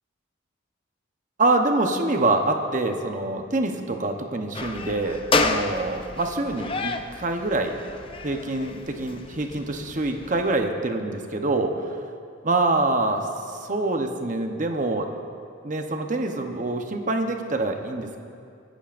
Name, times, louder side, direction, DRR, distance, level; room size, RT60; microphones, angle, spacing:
voice 1, 1.4-7.7 8.2-12.0 12.4-15.1 15.6-18.2, right 2 dB, 40° right, 4 dB, 0.9 m, -25 dB
sound 1, 4.5-10.6, left 3 dB, 25° left, 0.5 m, -30 dB
24.5 x 11.5 x 2.6 m, 2.4 s
head